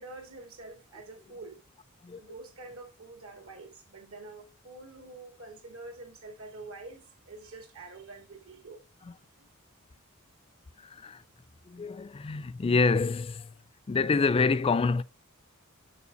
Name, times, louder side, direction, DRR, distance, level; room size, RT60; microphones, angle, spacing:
voice 1, 0.0-1.6 2.2-8.8 9.4-9.5, right 3 dB, 75° right, 2.3 m, -46 dB
voice 2, 10.8-11.2 11.7-13.5 13.9-15.0, left 4 dB, 25° left, 0.3 m, -27 dB
7.0 x 4.8 x 4.1 m
head